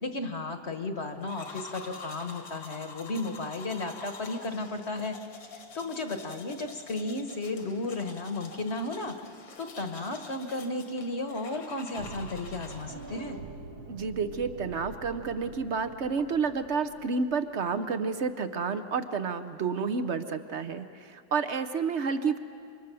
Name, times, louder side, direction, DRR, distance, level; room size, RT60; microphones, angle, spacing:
voice 1, 0.0-5.2 5.7-9.2 9.6-13.4, left 2 dB, 40° left, 6 dB, 1.3 m, -34 dB
sound 1, 1.2-13.2, left 4 dB, 80° left, 2.5 m, -47 dB
sound 2, 12.0-17.9, right 3 dB, 90° right, 2.0 m, -45 dB
voice 2, 13.9-22.4, right 5 dB, 55° right, 10 dB, 0.7 m, -30 dB
28.0 x 25.0 x 6.9 m, 2.4 s
omnidirectional pair, 2.1 m